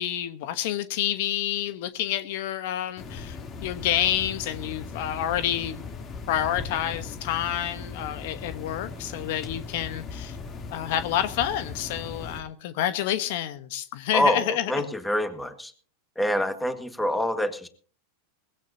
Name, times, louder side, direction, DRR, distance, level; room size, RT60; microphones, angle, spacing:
voice 1, 0.0-5.8 6.3-10.4 10.7-14.9, left 11 dB, 65° left, 1.1 m, -28 dB
sound 1, 3.0-12.4, left 5 dB, 40° left, 3.1 m, -38 dB
voice 2, 14.1-15.7 16.2-17.7, equal, 5° left, 1.8 m, -26 dB
20.0 x 16.0 x 2.8 m
hypercardioid pair, 110°, 0 cm